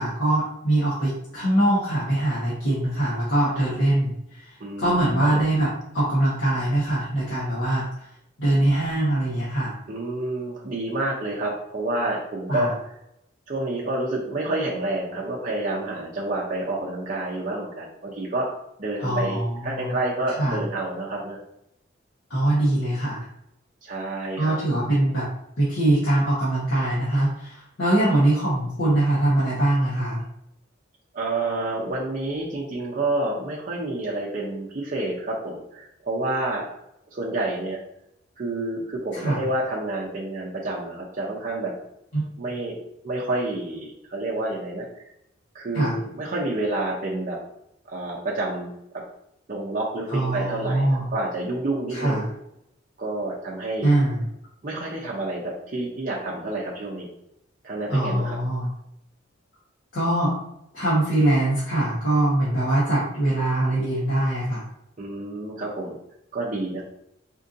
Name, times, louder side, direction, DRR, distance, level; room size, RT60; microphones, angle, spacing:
voice 1, 0.0-4.5 4.8-5.7 5.9-7.9 8.4-9.7 12.5-12.7 19.0-19.9 20.4-20.6 22.3-23.2 24.4-25.2 25.6-30.2 39.1-39.4 42.1-42.2 45.7-45.9 50.1-51.1 51.9-52.2 53.8-54.2 57.9-58.7 59.9-60.4 60.7-64.6, right 1 dB, 60° left, -9 dB, 1.1 m, -22 dB
voice 2, 4.6-5.4 9.9-12.7 13.5-18.5 18.8-21.4 23.8-24.6 31.1-36.7 37.1-37.8 38.4-41.7 42.4-42.8 43.0-44.9 45.5-47.4 47.9-48.7 49.5-52.3 53.0-53.9 54.6-57.1 57.6-58.4 65.0-66.0 66.3-66.8, right 2 dB, 40° right, -3 dB, 0.6 m, -29 dB
4.4 x 2.6 x 2.6 m, 0.79 s
head